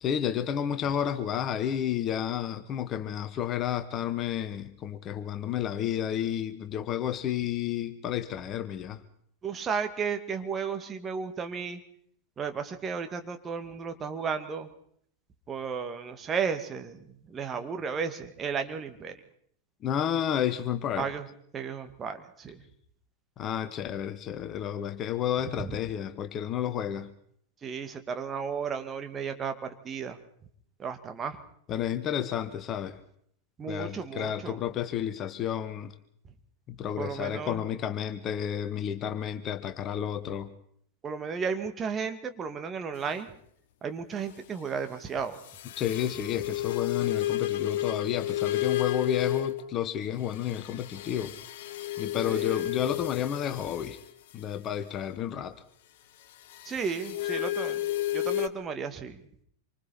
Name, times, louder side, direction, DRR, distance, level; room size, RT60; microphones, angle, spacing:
voice 1, 0.0-9.0 19.8-21.1 23.4-27.1 31.7-33.0 33.7-35.9 36.7-40.5 45.8-51.3 52.0-54.0 54.3-55.6, left 10 dB, 30° left, 11 dB, 1.5 m, -31 dB
voice 2, 9.4-11.8 12.4-14.7 15.5-19.1 21.0-21.3 21.5-22.6 25.6-25.7 27.6-29.6 29.8-30.2 30.8-31.4 33.6-34.6 37.0-37.6 41.0-43.3 43.8-45.4 52.1-52.6 56.7-57.8 58.1-59.2, right 6 dB, 20° right, 7 dB, 2.1 m, -34 dB
sound 1, 45.5-49.7 50.3-54.0 56.5-58.5, left 14 dB, 55° left, 1.0 m, -31 dB
27.0 x 25.0 x 4.3 m, 0.66 s
figure-of-eight pair, 90°, 0 cm